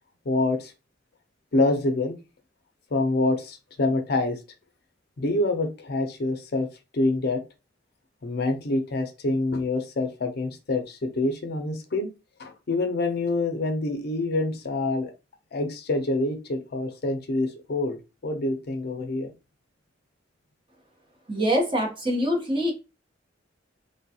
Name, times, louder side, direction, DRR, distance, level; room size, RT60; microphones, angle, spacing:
voice 1, 0.3-0.7 1.5-2.2 2.9-4.4 5.2-6.7 6.9-7.4 8.2-12.1 12.4-15.1 15.5-19.3, left 2 dB, 55° left, 6 dB, 0.5 m, -26 dB
voice 2, 21.3-22.7, equal, 25° right, 1 dB, 0.8 m, -24 dB
3.2 x 2.3 x 2.7 m, 0.28 s
head